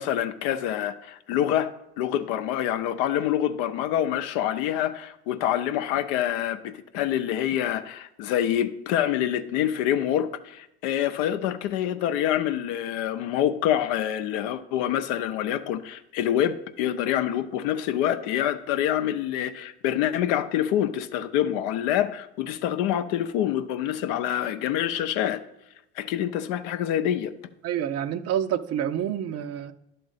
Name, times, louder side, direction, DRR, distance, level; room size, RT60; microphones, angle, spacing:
voice 1, 0.0-1.7 2.0-25.4 26.0-27.3, left 11 dB, 80° left, 0.6 m, -26 dB
voice 2, 27.6-29.7, right 10 dB, 55° right, 0.5 m, -28 dB
10.5 x 3.8 x 4.0 m
supercardioid pair, 80°, 30 cm